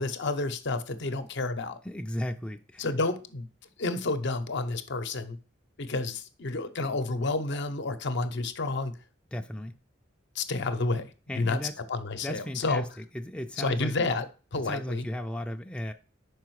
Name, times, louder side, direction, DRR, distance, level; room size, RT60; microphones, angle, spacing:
voice 1, 0.0-1.8 2.8-3.5 3.8-5.4 5.8-8.9 10.3-11.1 11.3-11.6 11.9-12.8 13.6-14.3 14.5-15.1, left 3 dB, 65° left, 0.7 m, -30 dB
voice 2, 1.8-2.9 9.3-9.8 11.3-11.7 12.2-13.9 14.6-15.9, equal, 5° left, 0.4 m, -35 dB
5.5 x 4.8 x 4.6 m
head